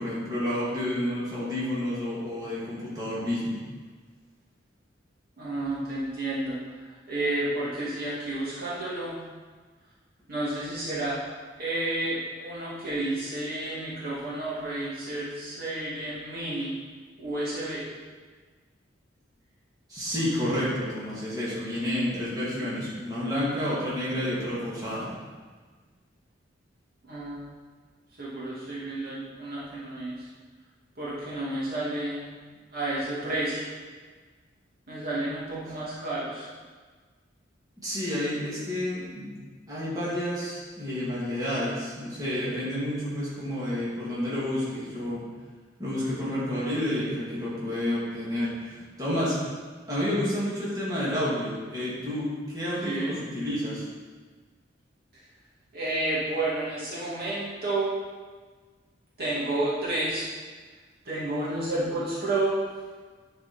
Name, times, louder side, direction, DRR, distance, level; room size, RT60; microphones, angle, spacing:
voice 1, 0.0-3.6 19.9-25.1 37.8-39.4 39.7-45.3 45.8-49.4 49.9-53.8, left 1 dB, 20° right, -9 dB, 2.6 m, -30 dB
voice 2, 5.4-9.2 10.3-11.2 11.6-16.8 17.2-17.9 27.0-27.4 28.2-30.3 31.0-32.4 32.7-33.6 34.9-36.5 52.8-53.1 55.7-57.9 59.2-60.3 61.0-62.5, right 2 dB, 55° right, -9 dB, 2.5 m, -31 dB
11.0 x 4.9 x 4.6 m, 1.5 s
head